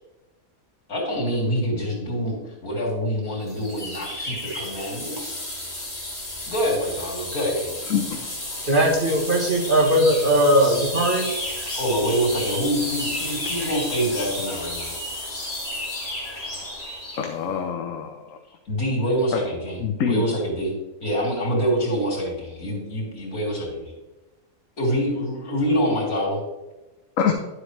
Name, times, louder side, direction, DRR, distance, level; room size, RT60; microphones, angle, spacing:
voice 1, 0.9-2.4 2.6-5.3 6.5-7.7 11.7-14.9 18.7-19.8 20.1-20.7 21.0-23.9 24.8-26.4, equal, 80° left, -3 dB, 3.7 m, -25 dB
sound 1, 3.5-17.3, left 1 dB, 25° left, 2.2 m, -32 dB
voice 2, 8.6-11.3, right 1 dB, 35° right, 1 dB, 1.6 m, -19 dB
voice 3, 17.2-18.4 19.3-19.4 19.8-20.3 27.2-27.3, left 7 dB, 65° left, 3 dB, 1.2 m, -25 dB
11.0 x 8.0 x 3.3 m, 1.1 s
omnidirectional pair, 1.5 m